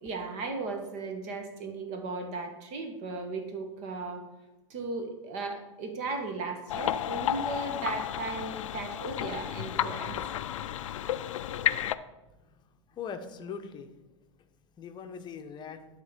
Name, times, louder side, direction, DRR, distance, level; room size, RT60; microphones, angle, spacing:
voice 1, 0.0-4.2 4.7-10.2, right 3 dB, 45° right, 5 dB, 1.3 m, -36 dB
sound 1, 6.7-12.0, left 11 dB, 75° left, 0.4 m, -32 dB
voice 2, 12.9-13.9 14.8-15.8, left 6 dB, 25° left, 7 dB, 0.8 m, -40 dB
9.9 x 3.7 x 5.1 m, 1.0 s
hypercardioid pair, 105°, 17 cm